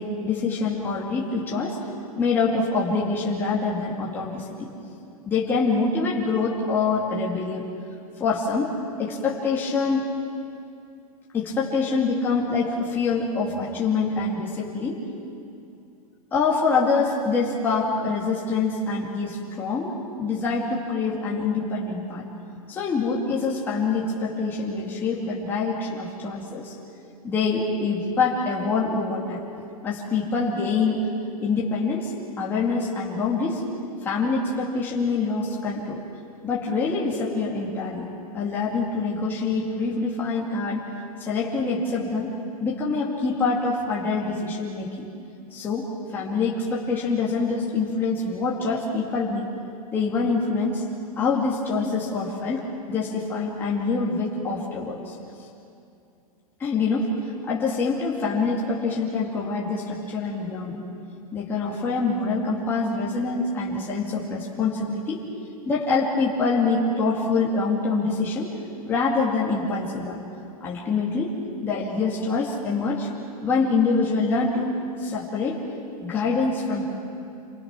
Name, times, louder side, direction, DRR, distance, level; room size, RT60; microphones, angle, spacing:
voice 1, 0.0-1.8 2.2-4.7 5.3-7.7 8.2-8.7 9.0-10.1 11.3-15.0 16.3-19.9 20.2-22.2 22.7-26.7 27.2-29.4 29.8-31.0 31.4-33.6 34.0-36.0 36.4-38.1 38.3-40.8 41.2-42.3 42.6-45.1 45.5-49.4 49.9-50.9 51.2-55.1 56.6-57.1 57.4-60.8 61.3-65.2 65.7-68.5 68.9-70.2 70.6-71.3 71.6-73.1 73.4-75.6 76.0-76.9, left 4 dB, 10° left, -5 dB, 2.2 m, -25 dB
28.5 x 23.5 x 6.1 m, 2.6 s
supercardioid pair, 175°, 19 cm